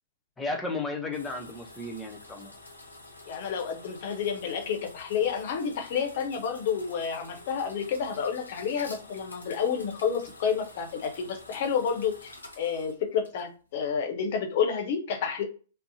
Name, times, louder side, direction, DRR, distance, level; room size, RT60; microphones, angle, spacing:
voice 1, 0.4-2.5, left 3 dB, 10° left, 3 dB, 0.6 m, -34 dB
sound 1, 1.1-13.7, left 2 dB, 85° left, 0.6 m, -49 dB
voice 2, 3.3-15.4, left 7 dB, 50° left, 5 dB, 0.7 m, -30 dB
2.6 x 2.0 x 2.6 m, 0.38 s
figure-of-eight pair, 115°, 0 cm